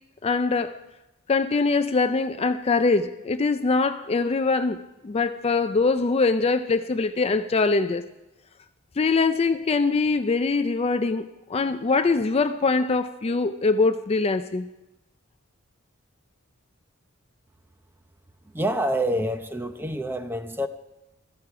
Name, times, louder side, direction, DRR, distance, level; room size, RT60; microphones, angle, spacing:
voice 1, 0.2-0.8 1.3-8.1 9.0-14.7, left 4 dB, 30° left, 0.4 m, -23 dB
voice 2, 18.5-20.7, right 1 dB, 10° right, 0.7 m, -27 dB
16.5 x 14.0 x 4.8 m
head